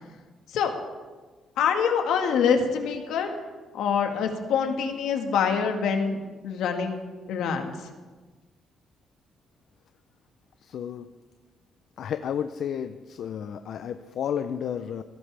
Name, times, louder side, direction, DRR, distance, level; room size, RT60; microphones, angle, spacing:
voice 1, 1.6-3.4 3.7-6.2 6.4-7.0 7.3-7.7, left 6 dB, 85° left, 4 dB, 1.6 m, -25 dB
voice 2, 10.6-11.1 12.0-15.0, left 8 dB, 70° left, 9 dB, 0.5 m, -32 dB
17.0 x 13.5 x 3.4 m, 1.3 s
cardioid pair, 90°, 0 cm